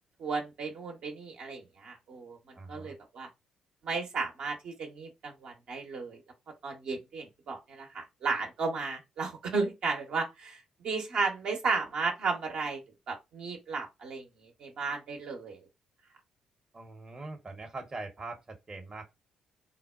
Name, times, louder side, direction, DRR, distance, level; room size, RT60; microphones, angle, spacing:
voice 1, 0.2-2.4 2.7-3.3 3.8-6.2 6.6-12.8 13.1-15.7, right 4 dB, 60° right, 0.8 m, -34 dB
voice 2, 2.5-2.9 16.7-19.0, right 3 dB, 30° right, 0.8 m, -42 dB
3.7 x 2.1 x 2.3 m
hypercardioid pair, 45°, 2 cm